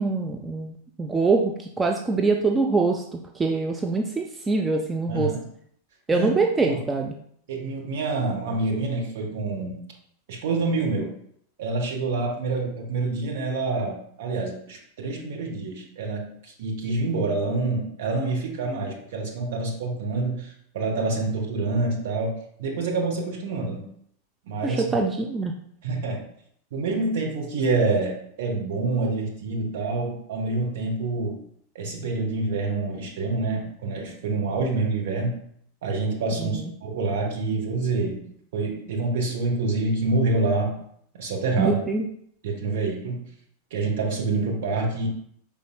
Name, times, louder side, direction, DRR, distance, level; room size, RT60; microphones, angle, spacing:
voice 1, 0.0-5.3 6.1-7.1 24.6-25.5 36.4-36.7 41.6-42.1, right 3 dB, 15° right, 2 dB, 0.4 m, -24 dB
voice 2, 5.1-5.4 6.1-6.4 6.6-6.8 7.5-9.8 10.3-11.1 11.6-23.8 24.4-25.0 25.8-26.2 26.7-31.4 31.7-35.4 35.8-38.3 38.5-40.7 41.1-41.8 42.4-43.2 43.7-45.1, right 3 dB, 55° right, 1 dB, 0.9 m, -27 dB
5.1 x 3.6 x 2.2 m, 0.66 s
figure-of-eight pair, 90°, 0 cm